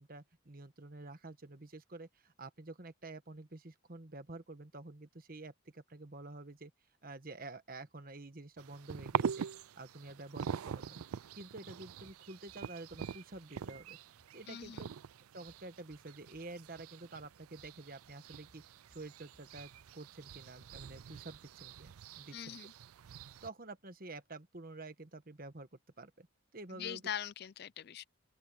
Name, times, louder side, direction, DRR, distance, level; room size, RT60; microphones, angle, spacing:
voice 1, 0.0-6.7 7.0-9.5 9.7-11.0 11.3-14.0 14.3-14.9 15.3-18.6 18.9-22.6 23.4-25.7 26.0-26.3 26.5-27.0, right 2 dB, 40° right, 1.4 m, -49 dB
sound 1, 8.6-23.5, right 7 dB, 85° right, 0.4 m, -44 dB
sound 2, 12.0-20.9, equal, 30° left, 1.8 m, -72 dB
voice 2, 14.5-14.9 22.3-22.7 26.7-28.0, left 9 dB, 50° left, 0.4 m, -42 dB
open air
head